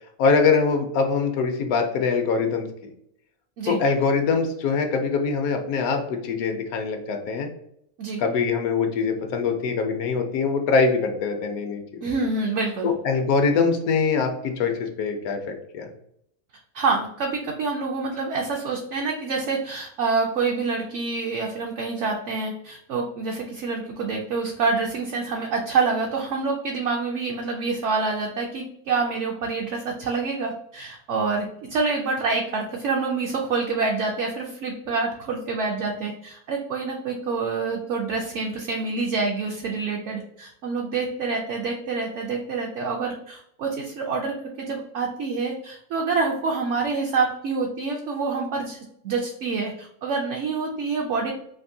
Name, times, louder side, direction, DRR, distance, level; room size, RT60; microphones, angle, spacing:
voice 1, 0.2-2.7 3.7-7.5 8.2-12.1 12.8-15.9, left 5 dB, 80° left, 5 dB, 1.1 m, -23 dB
voice 2, 12.0-12.9 16.7-48.8 49.0-51.3, right 4 dB, 65° right, 0 dB, 0.8 m, -27 dB
3.5 x 2.5 x 2.6 m, 0.72 s
omnidirectional pair, 1.5 m